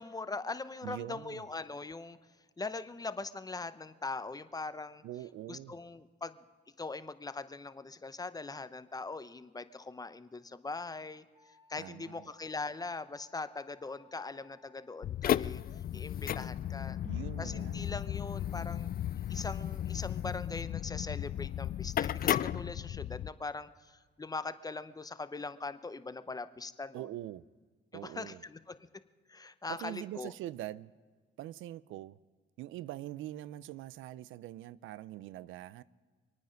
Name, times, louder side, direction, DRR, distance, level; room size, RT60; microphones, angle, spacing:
voice 1, 0.0-2.2 2.6-5.0 5.5-6.4 6.8-11.2 11.7-15.6 15.9-17.0 17.4-18.9 19.3-27.1 27.9-28.8 29.3-30.3, left 3 dB, 20° left, 0.7 m, -41 dB
voice 2, 0.8-1.5 5.0-5.8 11.8-12.3 17.0-17.8 26.9-27.4 27.9-28.4 29.7-30.9 31.4-32.2 32.6-35.8, right 14 dB, 85° right, 0.4 m, -43 dB
Wind instrument woodwind instrument, 11.3-15.1, left 4 dB, 30° right, 3.2 m, -64 dB
sound 1, 15.0-23.3, left 11 dB, 50° left, 0.4 m, -34 dB
25.5 x 9.4 x 5.2 m
cardioid pair, 90°, 20 cm